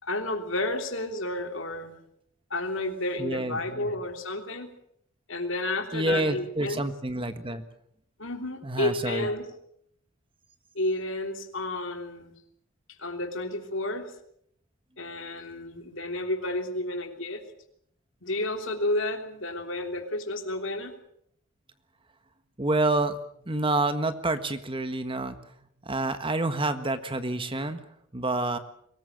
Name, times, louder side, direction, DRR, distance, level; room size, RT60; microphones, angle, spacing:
voice 1, 0.0-1.9 2.5-4.7 5.3-6.8 8.2-9.5 10.7-12.3 13.0-14.1 15.0-17.4 18.2-20.9, left 2 dB, 65° left, 5 dB, 3.3 m, -31 dB
voice 2, 3.2-3.9 5.9-7.6 8.6-9.3 22.6-23.2 23.4-25.3 25.8-27.8 28.1-28.6, right 2 dB, 25° right, 10 dB, 1.5 m, -28 dB
23.0 x 19.5 x 7.6 m, 0.69 s
head